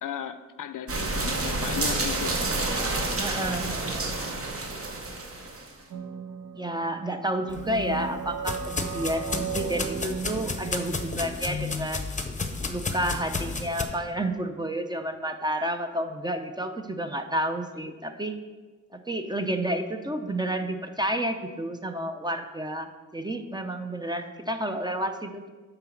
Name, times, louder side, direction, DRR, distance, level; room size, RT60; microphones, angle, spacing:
voice 1, 0.0-2.4, left 9 dB, 75° left, 12 dB, 0.5 m, -35 dB
sound 1, 0.9-5.7, right 2 dB, 45° right, 1.1 m, -29 dB
voice 2, 3.2-4.1 6.5-12.1 12.7-18.4 18.9-25.5, right 1 dB, 15° right, 6 dB, 0.5 m, -30 dB
sound 2, 5.9-11.3, right 7 dB, 60° right, 0.7 m, -36 dB
sound 3, 7.5-13.8, left 3 dB, 25° left, 0.7 m, -33 dB
8.8 x 3.9 x 5.8 m, 1.3 s
wide cardioid pair, 105°, 32 cm